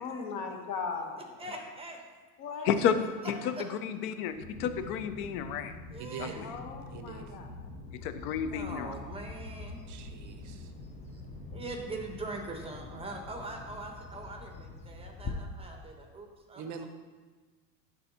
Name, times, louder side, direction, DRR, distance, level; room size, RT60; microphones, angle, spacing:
voice 1, 0.0-1.4 2.4-2.8 6.4-7.7, left 5 dB, 45° left, 4 dB, 1.2 m, -38 dB
voice 2, 1.4-2.0 2.5-2.9 3.2-3.7 5.9-6.4 8.5-9.8 11.1-16.9, right 2 dB, 10° right, 2 dB, 1.0 m, -42 dB
voice 3, 3.8-5.7 6.2-6.4 8.0-8.9, left 8 dB, 65° left, 10 dB, 0.7 m, -31 dB
Aircraft, 4.3-13.7, left 2 dB, 90° left, 1.8 m, -46 dB
voice 4, 6.0-6.4 6.9-7.3 9.9-10.7 16.5-16.9, right 7 dB, 35° right, 7 dB, 0.7 m, -43 dB
Bird vocalization bird call bird song, 9.6-15.3, left 4 dB, 15° left, 0.5 m, -46 dB
11.0 x 4.1 x 2.9 m, 1.4 s
supercardioid pair, 105°, 49 cm